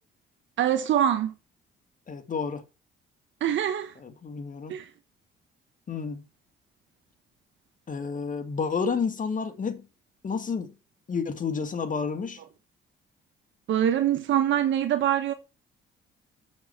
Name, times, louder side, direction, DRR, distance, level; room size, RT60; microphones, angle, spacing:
voice 1, 0.6-1.3 3.4-3.9 4.7-4.8 13.7-15.3, right 10 dB, 75° right, 1.2 m, -24 dB
voice 2, 2.1-2.6 4.0-4.7 5.9-6.2 7.9-9.9 10.2-10.7 11.1-12.4, left 5 dB, 40° left, 1.9 m, -30 dB
7.2 x 7.0 x 5.6 m
cardioid pair, 90°, 20 cm